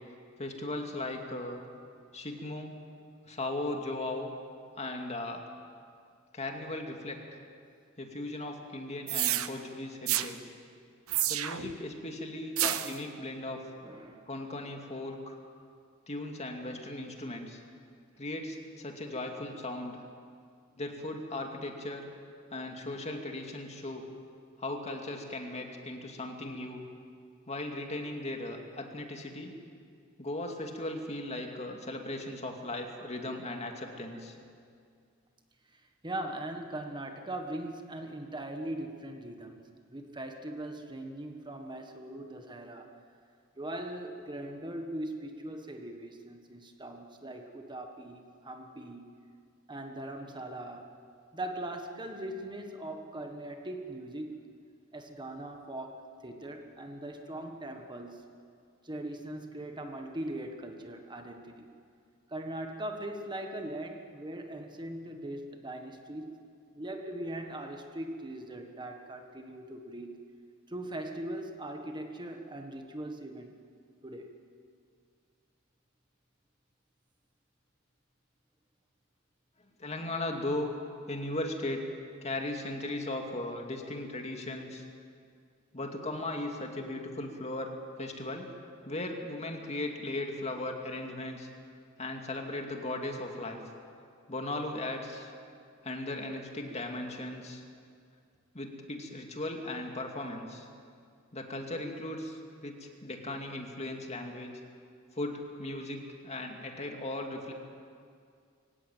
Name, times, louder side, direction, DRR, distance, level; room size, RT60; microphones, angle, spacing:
voice 1, 0.4-1.6 2.1-2.7 3.2-4.3 4.8-5.5 6.3-7.2 8.0-10.4 11.3-13.6 14.3-15.4 16.1-17.6 18.2-20.0 20.8-22.0 22.5-24.0 24.6-26.8 27.5-29.5 30.2-34.3 79.8-80.7 81.1-81.8 82.2-84.9 85.7-87.7 88.0-88.5 88.8-91.5 92.0-93.6 94.3-95.3 95.8-97.6 98.5-100.7 101.3-104.5 105.2-107.5, left 2 dB, 30° left, 3 dB, 2.4 m, -37 dB
sound 1, 9.1-9.5 10.1-10.3 11.1-11.7 12.6-13.0, right 13 dB, 85° right, 1.0 m, -29 dB
voice 2, 13.8-14.2 28.1-28.2 35.7-42.9 43.6-49.1 49.7-50.9 51.3-54.4 54.9-58.2 58.8-61.7 62.3-66.3 66.7-70.2 70.7-73.5 74.0-74.3, right 1 dB, 20° right, 4 dB, 1.4 m, -40 dB
23.5 x 17.0 x 9.2 m, 2.3 s
head